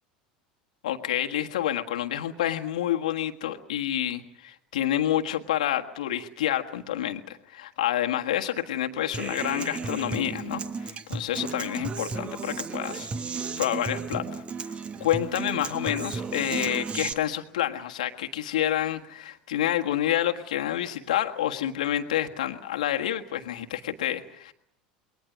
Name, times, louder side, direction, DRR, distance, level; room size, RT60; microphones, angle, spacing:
voice 1, 0.8-13.1 13.6-14.7 15.0-24.5, left 12 dB, 65° left, 5 dB, 1.6 m, -28 dB
Human voice / Acoustic guitar, 9.1-17.1, right 5 dB, 25° right, 1.3 m, -34 dB
28.0 x 22.0 x 6.2 m, 0.69 s
figure-of-eight pair, 75°, 4 cm